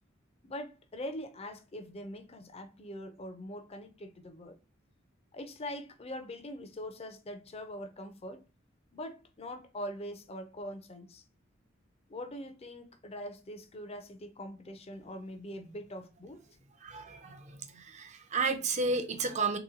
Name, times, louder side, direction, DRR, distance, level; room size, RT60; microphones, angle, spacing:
voice 1, 0.4-4.6 5.3-8.4 8.9-11.2 12.1-16.4, left 1 dB, 30° left, 0.6 m, -43 dB
voice 2, 16.8-19.6, right 3 dB, 35° right, 0.6 m, -32 dB
3.4 x 3.0 x 3.7 m
head